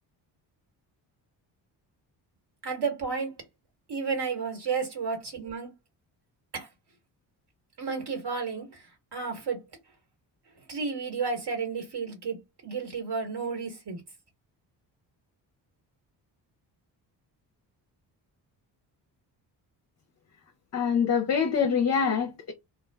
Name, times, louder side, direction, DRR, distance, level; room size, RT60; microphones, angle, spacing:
voice 1, 2.6-3.3 3.9-5.7 6.5-6.7 7.8-8.8 9.1-9.6 10.7-12.4 12.6-14.0, right 5 dB, 60° right, 1.5 m, -32 dB
voice 2, 20.7-22.5, left 6 dB, 40° left, 0.6 m, -25 dB
2.4 x 2.1 x 3.4 m
supercardioid pair, 55°, 46 cm